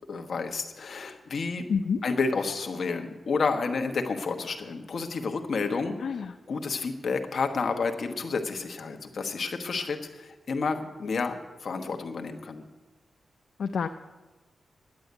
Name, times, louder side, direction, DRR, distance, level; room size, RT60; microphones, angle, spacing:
voice 1, 0.1-1.7 2.0-12.7, left 4 dB, 60° left, 5 dB, 1.2 m, -30 dB
voice 2, 1.7-2.0 6.0-6.3 13.6-13.9, left 6 dB, 75° left, 7 dB, 0.4 m, -28 dB
11.0 x 7.9 x 9.5 m, 1.2 s
wide cardioid pair, 175°, 0 cm